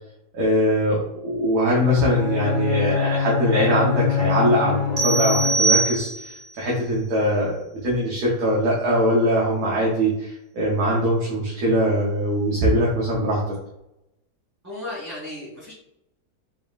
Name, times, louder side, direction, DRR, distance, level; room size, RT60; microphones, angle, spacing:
voice 1, 0.3-13.5, equal, 70° right, -5 dB, 1.4 m, -22 dB
Bowed string instrument, 1.8-6.0, left 7 dB, 70° left, 0.7 m, -25 dB
sound 1, 5.0-6.5, right 3 dB, 50° right, 0.5 m, -22 dB
voice 2, 14.6-15.7, left 1 dB, 10° right, -11 dB, 1.3 m, -34 dB
4.1 x 3.5 x 2.4 m, 0.84 s
omnidirectional pair, 1.7 m